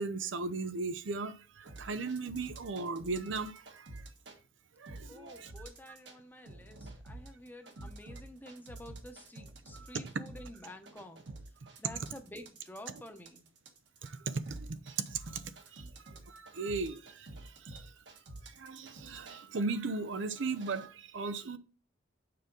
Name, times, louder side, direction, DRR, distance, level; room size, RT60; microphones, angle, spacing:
voice 1, 0.0-4.0 4.8-5.5 9.7-9.9 14.0-15.4 15.7-15.8 16.3-17.9 18.4-21.6, right 4 dB, 85° right, 0.6 m, -37 dB
sound 1, 1.7-4.4 4.9-6.2 6.5-19.4 20.0-20.9, right 2 dB, 65° right, 1.3 m, -49 dB
voice 2, 5.1-11.2 11.8-13.5, left 1 dB, 10° left, 0.8 m, -50 dB
6.7 x 5.0 x 3.8 m
head